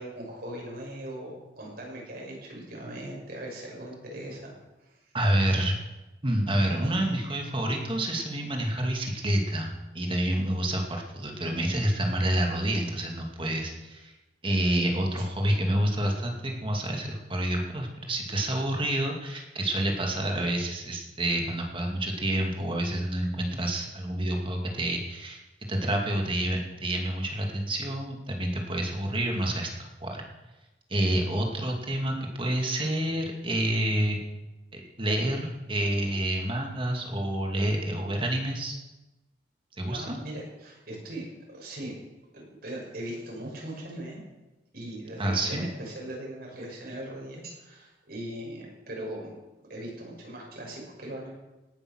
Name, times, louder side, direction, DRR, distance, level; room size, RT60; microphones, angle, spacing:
voice 1, 0.0-4.5 4.8-5.0 15.2-15.3 39.9-41.9 42.3-44.2 44.7-49.3 49.7-51.3, right 1 dB, 60° right, -2 dB, 6.7 m, -39 dB
voice 2, 5.1-5.8 6.2-14.1 14.4-25.4 25.7-30.2 30.9-34.2 34.7-38.8 39.8-40.2 45.2-45.7, right 1 dB, 30° right, 1 dB, 2.4 m, -28 dB
18.5 x 11.0 x 6.4 m, 1.0 s
head